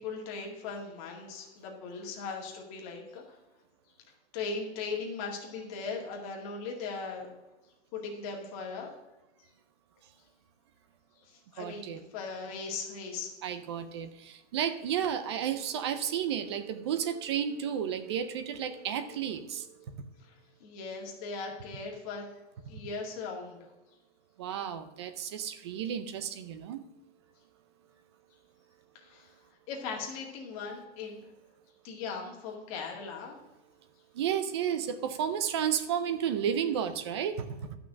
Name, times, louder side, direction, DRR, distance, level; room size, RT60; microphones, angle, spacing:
voice 1, 0.0-3.4 4.3-7.3 7.9-8.9 11.2-13.3 20.2-20.3 20.6-22.3 22.7-23.6 28.9-29.3 29.7-31.2 31.8-33.4, left 4 dB, 30° left, 1 dB, 2.1 m, -39 dB
voice 2, 11.6-12.0 13.4-19.9 24.4-26.8 34.1-37.8, right 8 dB, 25° right, 11 dB, 0.5 m, -32 dB
12.5 x 5.9 x 6.2 m, 1.1 s
supercardioid pair, 175°, 35 cm